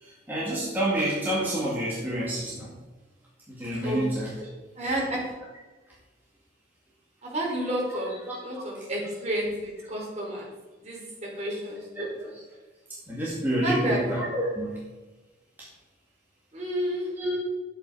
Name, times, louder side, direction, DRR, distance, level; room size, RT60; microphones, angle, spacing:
voice 1, 0.0-2.7 3.5-4.5 4.8-4.9 8.2-8.8 12.0-12.1 13.1-14.8 17.2-17.4, right 1 dB, 10° right, -7 dB, 2.3 m, -29 dB
voice 2, 4.8-5.2 7.2-8.1 8.4-10.5 10.8-12.1 13.6-14.0 16.5-17.1, right 1 dB, 35° right, -3 dB, 3.9 m, -30 dB
11.0 x 8.8 x 4.9 m, 1.2 s
head